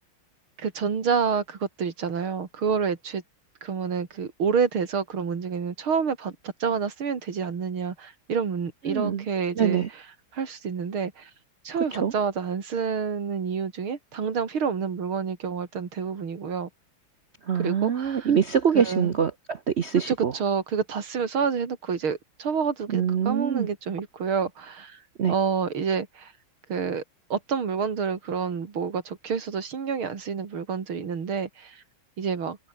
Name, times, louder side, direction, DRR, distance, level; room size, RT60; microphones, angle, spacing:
voice 1, 0.6-3.2 3.6-9.8 10.3-11.3 11.6-16.7 17.6-18.3 18.7-19.1 20.1-25.0 25.3-26.3 26.7-27.0 27.3-31.8 32.2-32.6, right 6 dB, 80° right, 3.4 m, -28 dB
voice 2, 8.8-9.3 9.6-9.9 11.9-12.1 17.4-20.3 22.9-23.7 25.2-25.3, right 7 dB, 65° right, 0.6 m, -24 dB
omnidirectional pair, 2.3 m